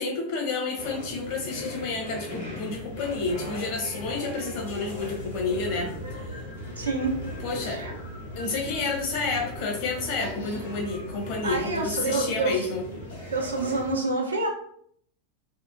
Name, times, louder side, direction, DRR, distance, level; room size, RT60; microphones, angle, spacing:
voice 1, 0.0-6.4 7.4-7.8 8.4-12.8, left 3 dB, 55° left, 1 dB, 0.8 m, -30 dB
sound 1, 0.8-13.9, left 1 dB, 85° left, 1.1 m, -38 dB
voice 2, 6.8-7.1 7.6-7.9 11.4-12.7 13.3-14.5, right 3 dB, 90° right, 1 dB, 0.5 m, -27 dB
2.8 x 2.1 x 2.5 m, 0.64 s
hypercardioid pair, 90°, 0 cm